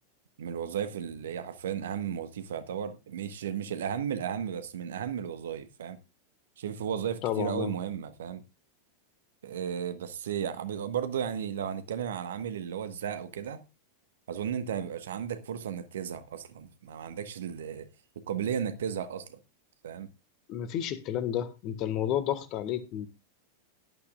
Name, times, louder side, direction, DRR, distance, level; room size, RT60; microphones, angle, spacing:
voice 1, 0.4-6.0 6.6-8.4 9.4-13.6 14.3-17.9 18.1-19.4 19.8-20.1, right 8 dB, 60° right, 1.3 m, -34 dB
voice 2, 7.2-7.7 20.5-23.1, left 10 dB, 40° left, 1.7 m, -31 dB
17.5 x 11.5 x 2.5 m
figure-of-eight pair, 90°, 0 cm